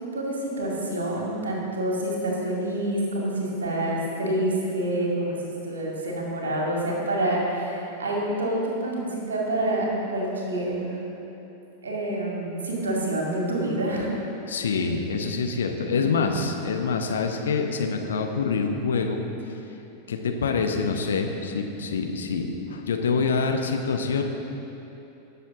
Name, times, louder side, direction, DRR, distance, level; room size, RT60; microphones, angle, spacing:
voice 1, 0.1-11.0 11.8-14.3 15.9-16.5, right 1 dB, 70° right, -2 dB, 2.4 m, -27 dB
voice 2, 14.5-19.2 20.1-24.2, left 4 dB, 65° left, 3 dB, 0.9 m, -26 dB
20.0 x 6.9 x 3.8 m, 2.9 s
figure-of-eight pair, 90°, 0 cm